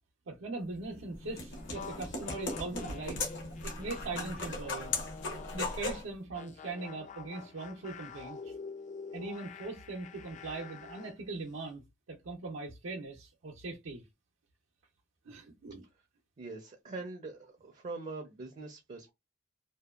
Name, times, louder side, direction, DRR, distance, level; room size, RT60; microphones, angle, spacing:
voice 1, 0.3-3.2 3.6-4.9 5.5-8.5 9.1-11.8 12.1-14.0 15.3-15.8, right 3 dB, 90° right, 0.6 m, -40 dB
sound 1, 0.8-6.1, left 3 dB, 65° left, 0.7 m, -38 dB
sound 2, 1.6-5.9 6.3-11.2, left 5 dB, 35° left, 0.3 m, -48 dB
voice 2, 16.4-19.1, right 3 dB, 40° right, 0.4 m, -43 dB
2.7 x 2.2 x 2.2 m
head